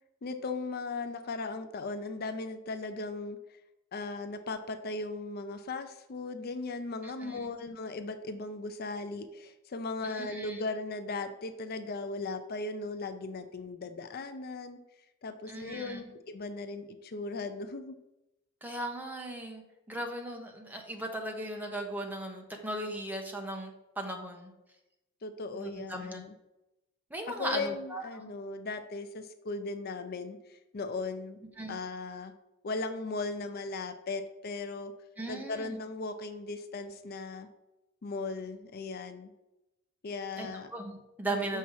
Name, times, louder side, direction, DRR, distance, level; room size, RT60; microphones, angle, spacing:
voice 1, 0.2-3.6 3.9-14.8 15.2-18.0 25.2-26.3 27.3-31.4 31.7-32.3 32.6-34.9 35.3-37.5 38.0-39.3 40.0-40.7 41.3-41.6, left 3 dB, 50° left, 9 dB, 0.5 m, -37 dB
voice 2, 7.0-7.5 10.0-10.6 15.5-16.1 18.6-23.7 24.0-24.5 25.5-26.2 27.1-28.3 31.6-31.8 35.2-35.8 40.4-41.6, right 1 dB, 10° right, 2 dB, 1.1 m, -38 dB
7.1 x 5.7 x 4.7 m, 0.95 s
head